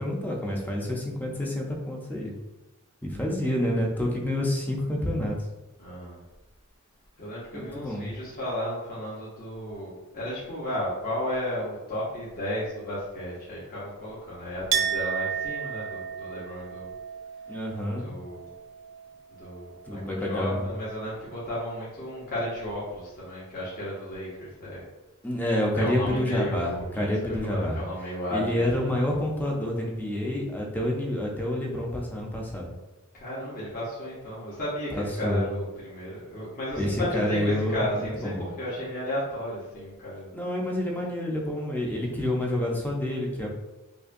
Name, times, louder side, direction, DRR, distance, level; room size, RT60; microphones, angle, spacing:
voice 1, 0.0-2.3 3.0-5.4 7.5-8.1 17.5-18.1 19.8-20.5 25.2-27.8 28.3-32.7 34.9-35.4 36.8-38.5 40.3-43.5, left 1 dB, 10° left, -1 dB, 0.6 m, -28 dB
voice 2, 5.8-6.2 7.2-16.9 18.0-18.5 19.4-24.8 25.8-28.9 33.1-40.3, equal, 40° left, -8 dB, 0.9 m, -34 dB
Chink clink, 14.7-20.2 20.5-21.4, right 7 dB, 60° right, 0.4 m, -34 dB
4.9 x 2.2 x 2.6 m, 1.0 s
head